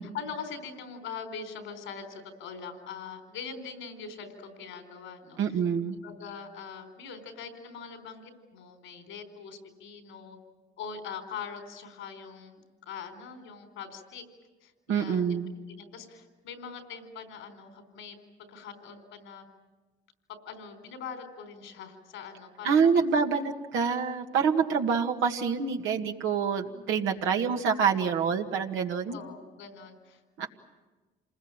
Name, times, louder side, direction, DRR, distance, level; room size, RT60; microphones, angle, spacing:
voice 1, 0.1-5.6 5.9-10.4 10.8-14.2 14.6-15.4 15.7-18.2 18.5-19.4 20.5-23.0 24.7-24.9 27.1-27.5 29.1-30.2, left 6 dB, 85° left, 7 dB, 4.1 m, -42 dB
voice 2, 5.4-6.0 14.9-15.5 22.6-29.2 30.4-30.5, right 6 dB, 80° right, 3 dB, 2.0 m, -26 dB
27.5 x 20.5 x 8.9 m, 1.3 s
supercardioid pair, 55°, 20 cm